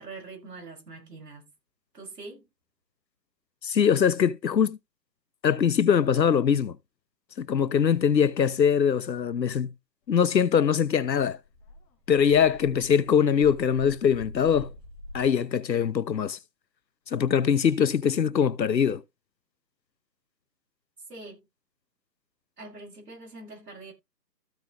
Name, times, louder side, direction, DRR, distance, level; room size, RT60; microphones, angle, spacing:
voice 1, 0.0-1.5 1.9-2.5 21.1-21.4 22.6-23.9, right 3 dB, 70° right, 6.4 m, -43 dB
voice 2, 3.6-4.8 5.4-6.8 7.4-9.7 10.1-11.4 12.1-14.7 15.1-16.4 17.1-19.0, left 7 dB, 85° left, 1.0 m, -22 dB
Dog, 11.4-15.2, left 1 dB, 15° left, 1.8 m, -45 dB
14.5 x 5.2 x 3.0 m
hypercardioid pair, 160°, 49 cm